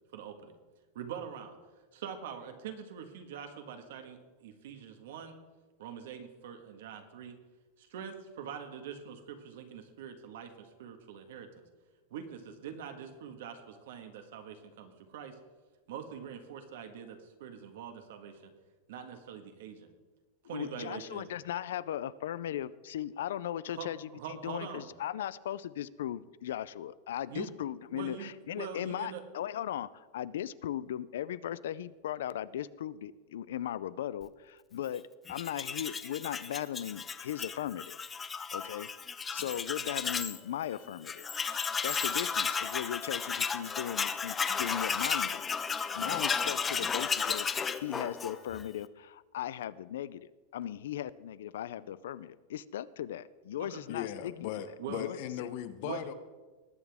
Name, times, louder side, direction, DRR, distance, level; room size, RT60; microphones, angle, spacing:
voice 1, 0.1-0.5 0.9-1.5 1.9-5.4 5.8-7.4 7.8-11.5 12.1-15.4 15.9-18.5 18.9-19.9 20.4-21.3 23.7-24.9 27.3-27.5 27.9-29.2 53.6-53.8 54.8-55.0 55.8-56.0, right 7 dB, 70° right, 6 dB, 1.6 m, -44 dB
voice 2, 20.4-38.0 38.5-38.9 39.3-41.3 41.8-54.5 55.0-55.5, left 11 dB, 85° left, 18 dB, 0.4 m, -38 dB
Tools, 35.3-40.4 40.7-40.8 41.1-48.7, left 6 dB, 15° left, 0.4 m, -33 dB
voice 3, 53.9-56.1, left 11 dB, 45° left, 12 dB, 0.8 m, -38 dB
19.5 x 8.1 x 3.6 m, 1.3 s
supercardioid pair, 175°, 0 cm